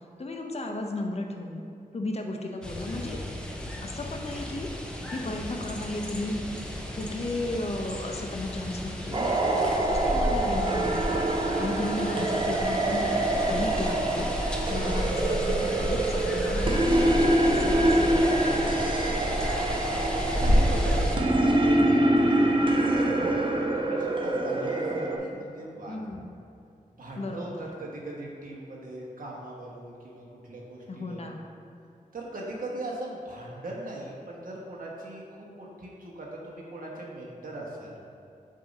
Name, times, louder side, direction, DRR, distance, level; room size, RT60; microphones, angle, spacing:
voice 1, 0.2-1.6 1.9-3.2 3.8-4.7 5.1-11.2 11.6-14.3 14.7-18.6 25.9-26.3 27.2-27.7 30.9-31.4, left 2 dB, 45° left, 2 dB, 0.6 m, -34 dB
sound 1, 2.6-21.2, equal, 5° left, 0.7 m, -31 dB
sound 2, 9.1-25.2, right 1 dB, 35° right, 0.6 m, -25 dB
voice 2, 15.9-16.2 19.2-26.0 26.9-31.4 32.1-38.0, right 1 dB, 70° right, -4 dB, 1.3 m, -40 dB
7.5 x 2.8 x 5.2 m, 2.6 s
wide cardioid pair, 95°, 15 cm